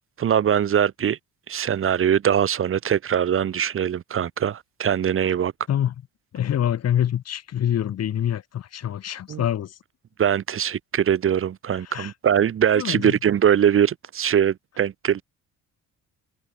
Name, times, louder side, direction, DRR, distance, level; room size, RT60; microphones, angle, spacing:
voice 1, 0.2-1.2 1.5-5.5 9.3-9.4 10.2-15.2, right 9 dB, 45° right, 1.5 m, -22 dB
voice 2, 6.3-9.8 11.8-12.1 12.8-13.1, left 10 dB, 55° left, 3.8 m, -25 dB
cardioid pair, 120°, 30 cm